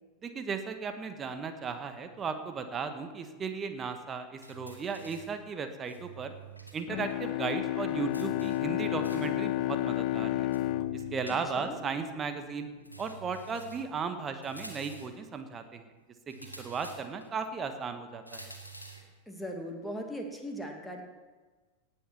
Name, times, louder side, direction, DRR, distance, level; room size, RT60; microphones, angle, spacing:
voice 1, 0.2-6.3 6.7-10.5 10.9-12.7 13.0-15.8 16.3-18.5, right 5 dB, 20° right, 7 dB, 1.6 m, -36 dB
sound 1, 4.4-5.4 5.9-6.8 7.1-7.2 8.1-9.4 10.5-11.8 12.8-14.0 14.4-15.2 16.3-17.3 18.3-19.1, right 4 dB, 90° left, 2.0 m, -48 dB
Bowed string instrument, 6.9-12.4, left 15 dB, 45° left, 0.6 m, -32 dB
voice 2, 11.3-11.8 19.3-21.0, equal, ahead, 1 dB, 2.4 m, -39 dB
18.0 x 8.1 x 6.1 m, 1.3 s
figure-of-eight pair, 90°, 0 cm